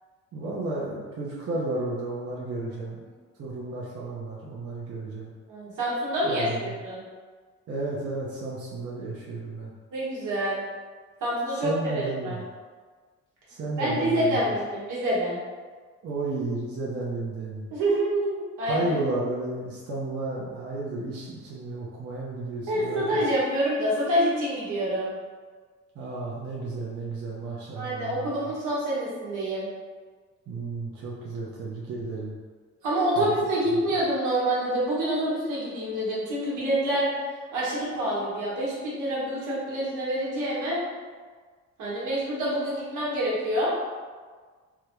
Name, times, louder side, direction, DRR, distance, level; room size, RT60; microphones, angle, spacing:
voice 1, 0.3-3.0 3.4-5.3 6.2-6.7 7.7-9.7 11.6-12.5 13.5-14.4 16.0-17.7 18.7-23.2 25.9-28.5 30.5-32.3 33.2-33.3, right 2 dB, 50° right, -6 dB, 0.7 m, -32 dB
voice 2, 5.5-7.0 9.9-10.6 11.2-12.4 13.8-15.4 17.7-18.9 22.7-25.1 27.7-29.7 32.8-37.1 37.5-40.8 41.8-43.7, right 1 dB, 85° right, -7 dB, 1.3 m, -27 dB
3.6 x 2.2 x 3.0 m, 1.5 s
cardioid pair, 90°, 30 cm